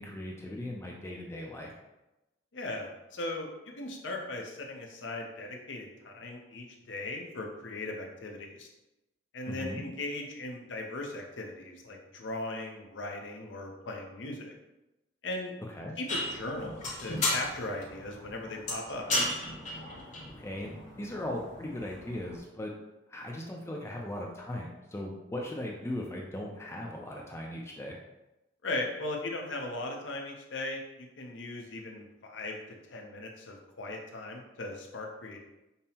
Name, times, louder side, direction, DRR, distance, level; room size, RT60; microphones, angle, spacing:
voice 1, 0.0-1.7 9.5-9.8 15.7-16.0 20.3-22.7 23.1-28.0, left 1 dB, 15° left, -1 dB, 0.4 m, -38 dB
voice 2, 2.5-8.7 9.3-14.5 15.2-15.5 16.0-19.1 28.6-32.6 32.9-35.4, left 2 dB, 75° left, 1 dB, 0.6 m, -38 dB
sound 1, 16.1-22.4, left 1 dB, 40° left, 0.8 m, -35 dB
5.3 x 2.0 x 2.8 m, 0.97 s
head